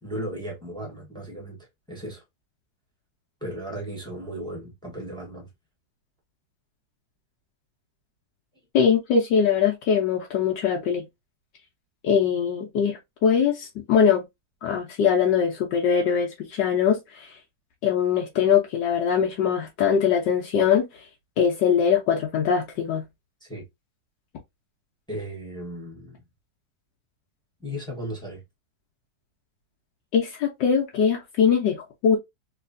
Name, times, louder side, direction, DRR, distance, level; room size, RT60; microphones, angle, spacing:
voice 1, 0.0-2.2 3.4-5.5 23.4-23.7 25.1-26.2 27.6-28.4, right 1 dB, 5° left, 1.0 m, -36 dB
voice 2, 8.7-11.1 12.0-14.2 14.6-17.4 17.8-20.9 21.4-23.0 30.1-32.2, left 7 dB, 85° left, 1.4 m, -22 dB
3.2 x 3.0 x 2.5 m
omnidirectional pair, 1.9 m